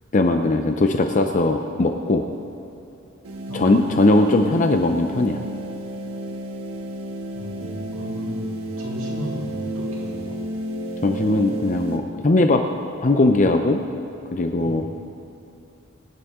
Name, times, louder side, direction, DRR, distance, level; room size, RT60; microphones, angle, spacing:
voice 1, 0.1-2.2 3.5-5.4 11.0-12.6 13.0-13.8 14.3-14.8, left 2 dB, 35° left, 5 dB, 0.6 m, -19 dB
sound 1, 3.2-12.0, equal, 85° right, 1.3 m, -31 dB
voice 2, 7.3-10.4 14.6-14.8, equal, 65° right, -6 dB, 3.5 m, -35 dB
24.0 x 9.7 x 3.7 m, 2.9 s
head